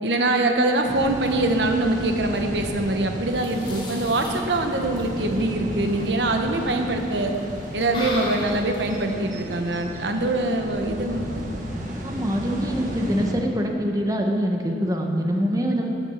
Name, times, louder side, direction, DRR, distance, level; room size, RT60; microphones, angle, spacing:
voice 1, 0.0-7.3 7.7-11.3, right 2 dB, 80° right, 4 dB, 1.1 m, -23 dB
sound 1, 0.6-9.2, left 1 dB, 30° left, 3.1 m, -40 dB
sound 2, 0.8-13.3, equal, 45° right, 1.7 m, -33 dB
voice 2, 12.0-15.9, equal, 20° right, 2 dB, 1.1 m, -24 dB
13.5 x 8.0 x 7.2 m, 2.7 s
head